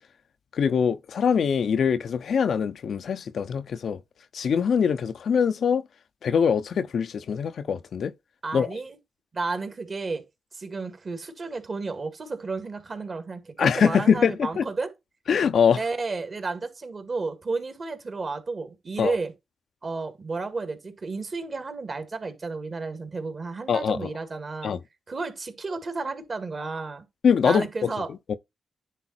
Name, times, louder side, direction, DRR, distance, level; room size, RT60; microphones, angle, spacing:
voice 1, 0.5-4.0 4.3-5.8 6.2-8.1 8.5-8.7 13.6-14.6 15.3-15.8 19.0-19.1 23.7-24.1 24.6-24.8 27.2-27.9 28.3-28.4, left 7 dB, 70° left, 0.7 m, -23 dB
voice 2, 8.4-9.0 9.3-10.2 10.5-14.9 15.8-19.3 19.8-24.7 25.1-27.1 27.4-28.1, right 3 dB, 45° right, 2.2 m, -32 dB
10.0 x 3.9 x 4.4 m
cardioid pair, 65°, 0 cm